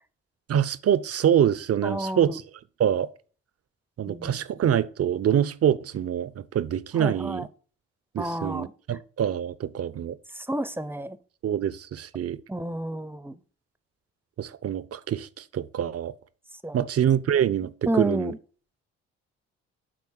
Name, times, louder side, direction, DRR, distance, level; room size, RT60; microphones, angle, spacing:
voice 1, 0.5-2.4 2.8-3.1 4.0-7.5 8.1-10.2 11.4-12.4 14.4-16.1 16.7-18.3, right 9 dB, 45° right, 0.7 m, -25 dB
voice 2, 1.8-2.4 4.1-4.4 7.0-7.5 8.2-8.7 10.4-11.2 12.5-13.4 16.6-16.9 17.9-18.4, right 1 dB, 5° right, 0.7 m, -30 dB
8.7 x 4.0 x 6.4 m
hypercardioid pair, 50°, 33 cm